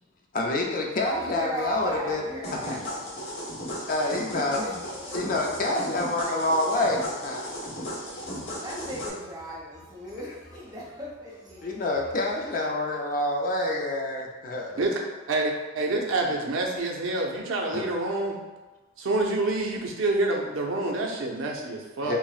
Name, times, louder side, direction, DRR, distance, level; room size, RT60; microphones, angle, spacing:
voice 1, 0.3-2.2 2.7-2.8 3.9-4.7 5.1-7.5 11.6-14.8 17.7-17.8 22.0-22.2, left 2 dB, 45° left, 0 dB, 0.5 m, -27 dB
voice 2, 0.9-2.9 4.6-5.6 8.1-11.9, equal, 20° right, -5 dB, 0.8 m, -38 dB
sound 1, 2.4-9.1, equal, 65° left, 1.1 m, -35 dB
voice 3, 15.3-18.4 19.0-22.2, right 2 dB, 75° right, 0 dB, 0.6 m, -27 dB
5.5 x 2.1 x 2.4 m, 1.2 s
head